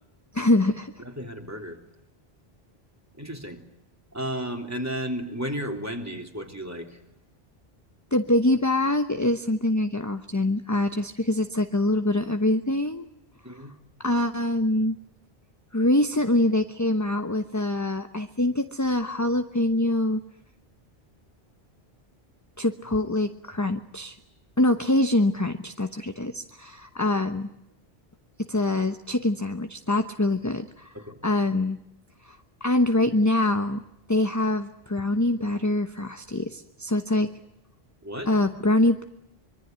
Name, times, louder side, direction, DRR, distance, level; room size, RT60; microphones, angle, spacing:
voice 1, 0.3-0.9 8.1-13.1 14.0-15.0 15.7-20.2 22.6-24.2 24.6-27.5 28.5-30.9 31.2-31.8 32.2-33.8 34.1-37.3 38.3-39.1, left 1 dB, 15° left, 8 dB, 1.0 m, -24 dB
voice 2, 1.0-1.8 3.2-3.6 4.1-7.0 13.4-13.7 30.9-31.2 38.0-38.3, equal, 15° right, 3 dB, 3.4 m, -33 dB
25.0 x 23.0 x 9.5 m, 0.83 s
omnidirectional pair, 1.1 m